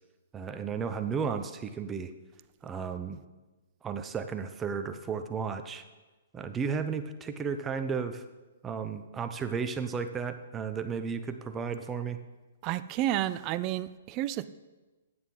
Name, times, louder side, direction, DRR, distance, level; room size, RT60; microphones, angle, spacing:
voice 1, 0.3-2.1 2.6-3.2 3.8-5.8 6.3-8.2 8.6-12.2, right 6 dB, 15° right, 8 dB, 0.9 m, -33 dB
voice 2, 12.6-14.5, right 13 dB, 30° right, 15 dB, 0.5 m, -30 dB
15.5 x 9.6 x 4.0 m, 1.2 s
figure-of-eight pair, 120°, 0 cm